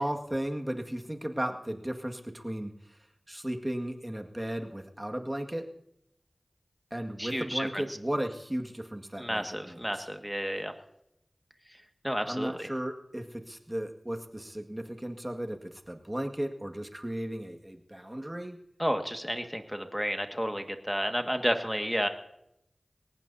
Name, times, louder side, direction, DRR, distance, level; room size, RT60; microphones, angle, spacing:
voice 1, 0.0-2.7 3.3-5.7 6.9-10.1 12.3-18.6, right 1 dB, 20° right, 3 dB, 1.9 m, -35 dB
voice 2, 7.2-7.8 9.2-10.7 12.0-12.7 18.8-22.1, equal, ahead, 5 dB, 1.8 m, -31 dB
22.0 x 19.0 x 2.8 m, 0.79 s
wide cardioid pair, 45°, 0 cm